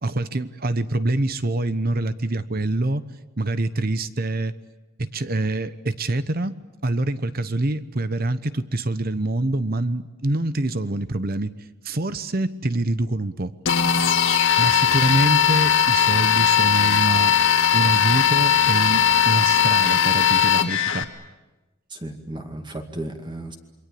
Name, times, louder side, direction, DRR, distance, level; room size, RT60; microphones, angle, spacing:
voice 1, 0.0-3.0 3.4-4.6 5.0-6.5 6.8-11.5 11.8-13.5 14.6-17.3 17.7-21.1, right 2 dB, 40° right, 13 dB, 0.9 m, -25 dB
sound 1, 13.7-21.0, left 8 dB, 60° left, 1.9 m, -19 dB
voice 2, 21.9-23.6, right 1 dB, 20° right, 4 dB, 2.1 m, -34 dB
28.0 x 23.0 x 8.6 m, 1.1 s
head